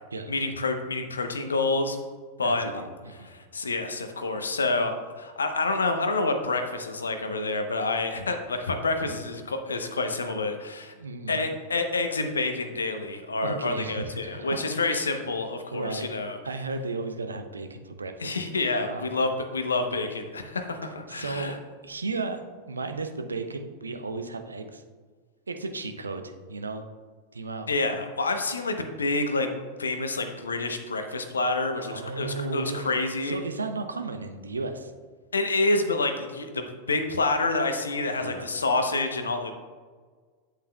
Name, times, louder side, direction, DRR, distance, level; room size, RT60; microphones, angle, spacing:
voice 1, 0.3-2.0 2.4-2.7 3.2-10.9 11.3-16.4 18.2-21.5 27.7-29.5 29.8-33.4 35.3-39.5, left 3 dB, 75° left, 7 dB, 0.7 m, -28 dB
voice 2, 2.4-3.3 9.0-9.2 10.9-11.5 13.4-14.8 15.7-16.1 16.4-18.4 18.9-19.2 21.1-21.6 21.8-24.8 25.5-26.8 27.3-27.7 31.9-32.9 33.2-34.9 38.1-38.5, right 3 dB, 75° right, 7 dB, 0.6 m, -34 dB
8.5 x 8.0 x 2.2 m, 1.5 s
figure-of-eight pair, 90°, 0 cm